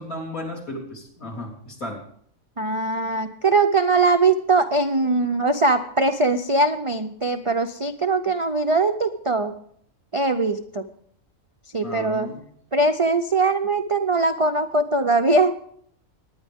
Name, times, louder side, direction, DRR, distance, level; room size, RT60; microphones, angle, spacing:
voice 1, 0.0-2.0 11.8-12.4, left 1 dB, 80° left, -2 dB, 4.0 m, -34 dB
voice 2, 2.6-9.5 10.1-10.8 11.7-12.3 12.7-15.6, right 3 dB, 55° right, 6 dB, 0.3 m, -21 dB
21.5 x 9.6 x 3.6 m, 0.64 s
omnidirectional pair, 1.5 m